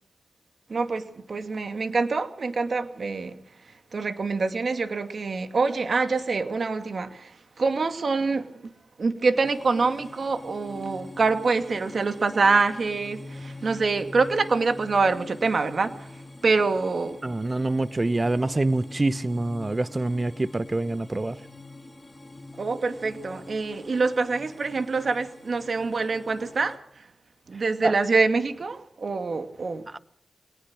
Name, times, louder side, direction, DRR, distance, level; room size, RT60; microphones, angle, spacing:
voice 1, 0.7-3.4 3.9-8.7 9.0-17.2 22.6-27.1 27.5-29.9, right 4 dB, 60° right, 2.3 m, -25 dB
sound 1, 9.4-26.8, left 2 dB, 30° left, 2.1 m, -44 dB
voice 2, 17.2-21.4 27.8-27.9, right 2 dB, 35° right, 1.1 m, -26 dB
24.0 x 19.0 x 6.5 m
cardioid pair, 50°, 0 cm